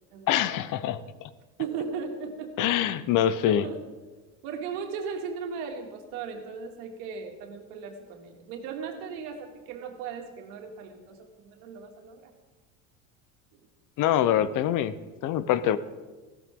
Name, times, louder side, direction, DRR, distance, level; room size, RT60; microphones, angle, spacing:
voice 1, 0.3-1.3 2.6-3.7 14.0-14.9 15.2-15.8, left 11 dB, 55° left, 15 dB, 0.9 m, -24 dB
voice 2, 1.6-2.7 3.4-3.8 4.4-12.3, right 6 dB, 75° right, 3 dB, 2.4 m, -37 dB
15.5 x 13.5 x 3.8 m, 1.3 s
supercardioid pair, 100°, 37 cm